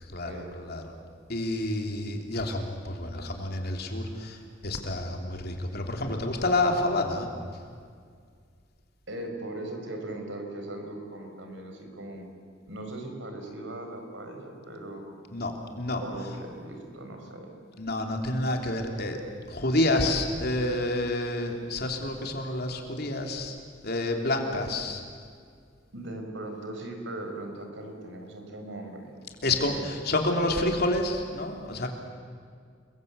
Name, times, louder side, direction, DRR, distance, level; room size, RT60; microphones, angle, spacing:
voice 1, 0.1-0.9 1.3-7.3 15.3-16.0 17.8-19.2 19.5-23.5 23.8-25.0 29.4-31.9, left 2 dB, 55° left, 3 dB, 3.2 m, -29 dB
voice 2, 9.1-12.3 12.7-15.0 16.0-17.5 24.5-24.6 25.9-29.1 29.4-29.8, right 1 dB, 75° right, 4 dB, 4.9 m, -39 dB
29.5 x 22.0 x 8.2 m, 2.1 s
head